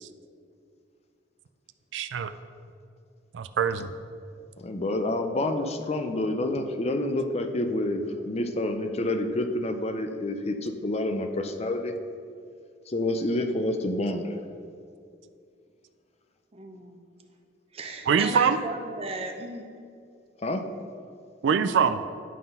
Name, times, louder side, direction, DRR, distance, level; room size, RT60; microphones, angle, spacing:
voice 1, 1.9-2.3 3.3-3.9 18.1-18.6 21.4-22.0, right 6 dB, 75° right, 11 dB, 0.4 m, -23 dB
voice 2, 4.6-11.9 12.9-14.4 20.4-20.6, left 1 dB, 35° left, 7 dB, 0.5 m, -28 dB
voice 3, 16.5-17.0 17.7-19.7, right 2 dB, 35° right, 4 dB, 0.7 m, -35 dB
11.0 x 3.9 x 5.4 m, 2.3 s
head